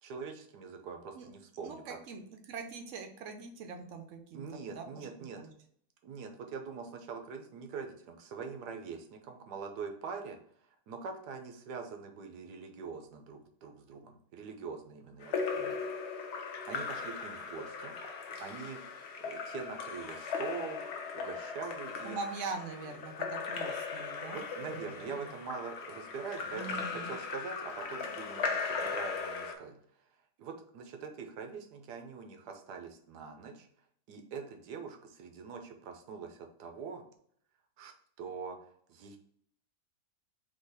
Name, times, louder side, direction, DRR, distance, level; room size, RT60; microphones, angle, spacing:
voice 1, 0.0-2.0 4.3-5.4 6.0-10.4 10.9-15.8 16.7-18.8 19.2-20.8 21.1-22.2 24.3-29.8 30.4-33.7 34.1-37.0 37.8-37.9 38.2-38.6 38.9-39.2, right 5 dB, 90° right, 5 dB, 1.3 m, -43 dB
voice 2, 1.6-5.1 5.4-5.5 22.0-24.4 24.7-25.3 26.4-27.1, right 4 dB, 60° right, 5 dB, 0.9 m, -43 dB
Splash splatter / Drip / Trickle dribble, 15.2-29.5, left 5 dB, 60° left, 0.7 m, -38 dB
3.9 x 2.9 x 4.0 m, 0.64 s
omnidirectional pair, 1.7 m